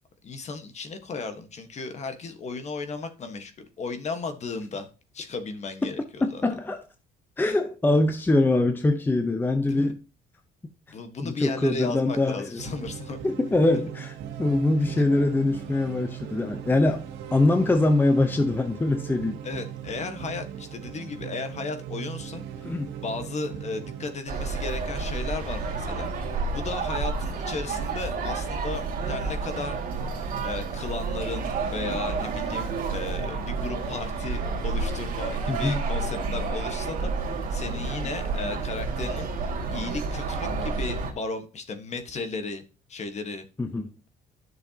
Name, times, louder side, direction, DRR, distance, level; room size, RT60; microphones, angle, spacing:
voice 1, 0.2-4.9 5.1-6.4 9.6-9.9 10.9-13.2 19.4-22.4 23.0-26.1 26.5-29.8 30.4-42.6 42.9-43.5, left 4 dB, 40° left, 1.4 m, -35 dB
voice 2, 6.2-6.8 7.4-10.0 11.2-12.6 13.2-17.0 17.3-19.4 22.6-22.9 35.5-35.8 43.6-43.9, left 2 dB, 10° left, 0.8 m, -23 dB
sound 1, 12.6-24.2, right 9 dB, 90° right, 1.2 m, -39 dB
sound 2, 24.3-41.1, right 4 dB, 55° right, 2.3 m, -30 dB
10.5 x 6.3 x 2.9 m
cardioid pair, 110°, 17 cm